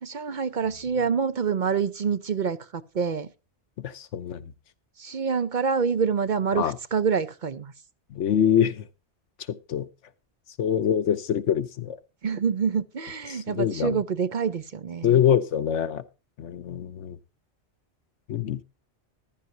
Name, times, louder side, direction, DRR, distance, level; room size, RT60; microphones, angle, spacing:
voice 1, 0.0-3.3 5.0-7.7 12.2-15.2, right 6 dB, 50° right, 0.7 m, -26 dB
voice 2, 3.8-4.5 6.5-6.8 8.1-8.9 9.5-9.9 10.6-12.0 13.3-14.0 15.0-16.0 16.4-17.2 18.3-18.6, left 9 dB, 90° left, 1.2 m, -25 dB
14.5 x 11.5 x 2.8 m
omnidirectional pair, 1.2 m